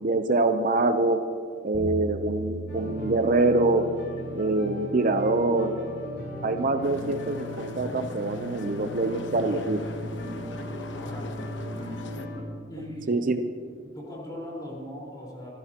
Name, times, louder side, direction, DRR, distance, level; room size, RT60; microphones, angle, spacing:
voice 1, 0.0-1.2 1.6-3.8 4.3-5.8 6.4-9.8 13.1-13.4, right 2 dB, 45° right, 8 dB, 0.7 m, -24 dB
sound 1, 1.7-9.8, right 2 dB, 25° right, 2.9 m, -42 dB
sound 2, 2.7-12.4, left 1 dB, 70° left, 4.2 m, -37 dB
sound 3, 6.8-12.3, left 2 dB, 90° left, 1.1 m, -43 dB
voice 2, 10.9-11.4 12.7-13.1 13.9-15.5, equal, 20° left, -4 dB, 4.4 m, -39 dB
26.5 x 15.0 x 2.9 m, 2.2 s
head